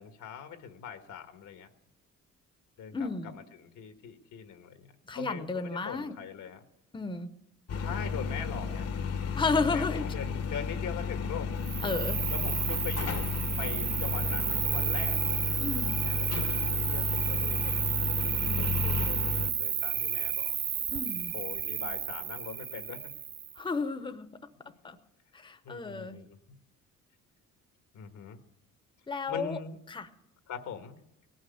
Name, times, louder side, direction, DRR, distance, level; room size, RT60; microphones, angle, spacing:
voice 1, 0.0-1.7 2.8-4.9 5.1-6.6 7.8-8.9 9.7-11.5 12.3-13.3 13.6-15.4 16.0-17.9 18.2-20.5 21.3-23.1 24.6-24.9 25.6-26.4 27.9-28.4 29.3-29.8 30.5-30.9, left 7 dB, 80° left, 7 dB, 1.6 m, -42 dB
voice 2, 2.9-3.3 5.1-6.1 6.9-7.3 9.4-10.1 11.8-12.2 15.6-16.0 18.4-18.8 20.9-21.3 23.6-24.3 24.8-25.0 25.3-26.3 29.1-29.6 29.9-30.1, left 4 dB, 15° left, 9 dB, 0.8 m, -32 dB
sound 1, 7.7-19.5, left 6 dB, 55° left, 1.0 m, -33 dB
Cricket, 11.6-23.6, right 9 dB, 45° right, 0.6 m, -32 dB
17.5 x 6.3 x 9.4 m, 0.86 s
cardioid pair, 90°, 30 cm